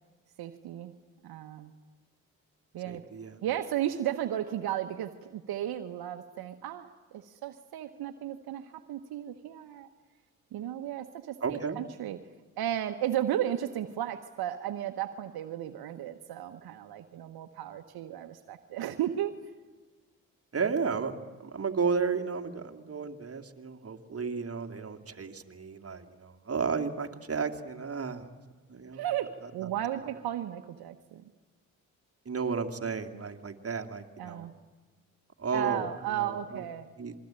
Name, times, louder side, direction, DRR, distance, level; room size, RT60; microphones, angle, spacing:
voice 1, 0.4-1.0 1.2-1.7 2.7-3.0 3.4-9.9 10.5-12.2 12.6-19.3 28.9-31.3 34.2-34.5 35.5-36.9, right 11 dB, 70° right, 7 dB, 1.2 m, -34 dB
voice 2, 2.9-3.4 11.4-11.8 20.5-21.1 21.4-28.3 28.7-29.0 29.6-29.7 32.3-34.5 35.4-35.9 36.2-36.6 37.0-37.1, right 5 dB, 35° right, 4 dB, 2.4 m, -33 dB
26.5 x 22.0 x 8.9 m, 1.3 s
supercardioid pair, 50°, 39 cm